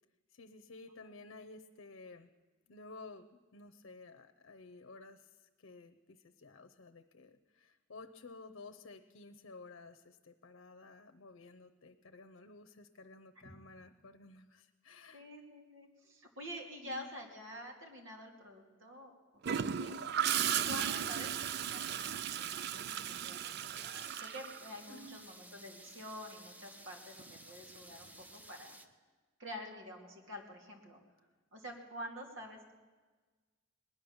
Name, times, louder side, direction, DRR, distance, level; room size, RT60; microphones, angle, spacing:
voice 1, 0.3-2.3 2.7-15.3 16.0-16.1 16.8-17.1 24.9-25.2 31.7-31.8, left 3 dB, 80° left, 7 dB, 0.7 m, -54 dB
voice 2, 15.1-20.0 20.6-28.8 29.4-31.0 31.5-32.6, equal, 75° right, 2 dB, 2.4 m, -48 dB
Gurgling / Toilet flush, 19.4-25.2 27.2-27.4, right 9 dB, 55° right, 0.4 m, -36 dB
sound 1, 23.7-28.9, right 1 dB, 10° right, 0.6 m, -55 dB
19.5 x 10.5 x 7.1 m, 1.4 s
head